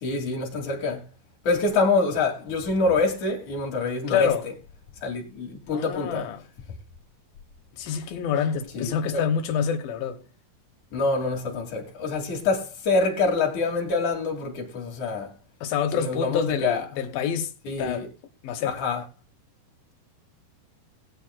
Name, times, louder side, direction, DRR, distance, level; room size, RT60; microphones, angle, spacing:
voice 1, 0.0-1.0 1.4-4.5 5.0-6.3 8.7-9.2 10.9-15.3 16.0-16.9 17.7-18.1 18.6-19.0, left 3 dB, 50° left, 3.4 m, -26 dB
voice 2, 4.1-4.4 5.7-6.4 7.8-10.2 15.6-17.5 17.8-18.1 18.4-18.8, left 7 dB, 70° left, 2.6 m, -27 dB
21.5 x 8.2 x 2.2 m
omnidirectional pair, 4.6 m